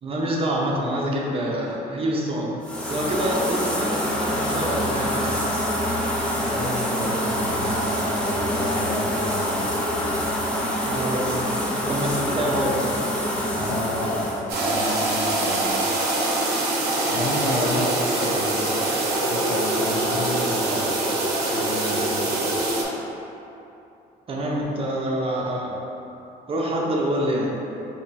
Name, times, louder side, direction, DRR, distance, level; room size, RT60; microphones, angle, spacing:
voice 1, 0.0-2.5 2.9-5.9 7.2-7.3 10.9-11.4 11.7-12.8 13.6-13.7 17.3-17.8 18.1-18.3 24.3-25.8 26.5-27.5, right 1 dB, 35° right, -2 dB, 0.7 m, -26 dB
sound 1, 2.6-14.4, equal, 5° left, 0.6 m, -25 dB
voice 2, 6.3-9.6 13.4-15.8 17.1-18.8 19.2-21.0 21.5-22.3, equal, 40° left, -6 dB, 0.8 m, -31 dB
sound 2, 14.5-22.8, right 2 dB, 80° right, 0.8 m, -24 dB
3.5 x 2.9 x 4.1 m, 2.9 s
cardioid pair, 110°, 17 cm